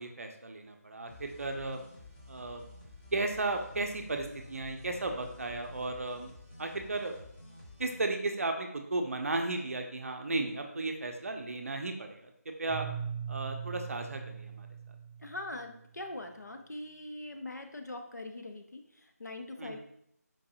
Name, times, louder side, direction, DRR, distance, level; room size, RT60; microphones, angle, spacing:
voice 1, 0.0-1.8 2.3-2.6 3.1-6.3 6.6-7.1 7.8-12.3 12.6-12.9 13.3-14.7 19.6-19.8, right 2 dB, 55° right, 4 dB, 0.5 m, -34 dB
sound 1, 1.1-8.0, left 2 dB, 35° left, 0.9 m, -51 dB
Keyboard (musical), 12.7-15.8, right 7 dB, 10° right, 0.5 m, -40 dB
voice 2, 15.2-19.8, left 2 dB, 85° left, 4 dB, 0.6 m, -42 dB
4.6 x 2.6 x 2.8 m, 0.72 s
figure-of-eight pair, 160°, 9 cm